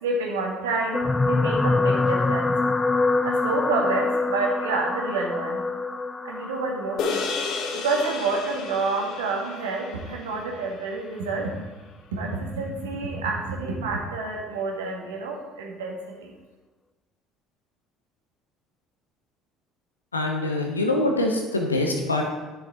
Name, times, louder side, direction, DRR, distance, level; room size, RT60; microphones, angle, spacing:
voice 1, 0.0-2.5 3.2-5.6 6.2-7.2 7.7-11.5 12.1-16.3, right 3 dB, 70° right, 0 dB, 1.8 m, -28 dB
sound 1, 0.9-9.4 10.2-10.4 10.7-10.8, left 3 dB, 15° left, 0.4 m, -26 dB
sound 2, 7.0-11.6, left 5 dB, 55° left, 1.2 m, -33 dB
voice 2, 20.1-22.2, left 2 dB, 85° left, 2 dB, 1.2 m, -24 dB
10.5 x 6.7 x 4.4 m, 1.2 s
figure-of-eight pair, 60°, 0 cm